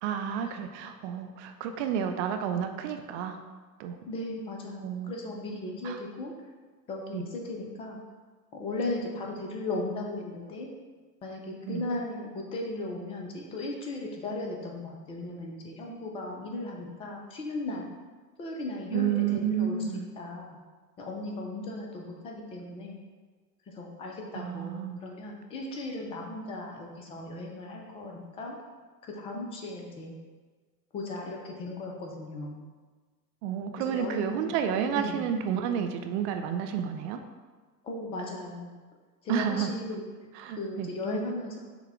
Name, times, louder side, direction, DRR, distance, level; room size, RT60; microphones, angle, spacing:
voice 1, 0.0-3.4 3.8-4.0 4.8-5.1 5.8-6.0 7.1-7.3 11.7-11.9 18.9-20.1 24.3-25.0 33.4-37.2 39.3-39.7 40.3-40.9, right 8 dB, 45° right, 7 dB, 0.5 m, -30 dB
voice 2, 4.1-6.3 6.9-8.0 8.5-10.7 11.2-17.9 18.4-20.6 21.0-23.0 23.7-28.5 29.1-30.2 30.9-32.7 33.9-34.5 34.9-35.2 37.8-38.7 39.2-40.1 40.5-41.6, left 2 dB, 15° left, 0 dB, 0.3 m, -36 dB
5.9 x 2.1 x 3.4 m, 1.4 s
hypercardioid pair, 90°, 48 cm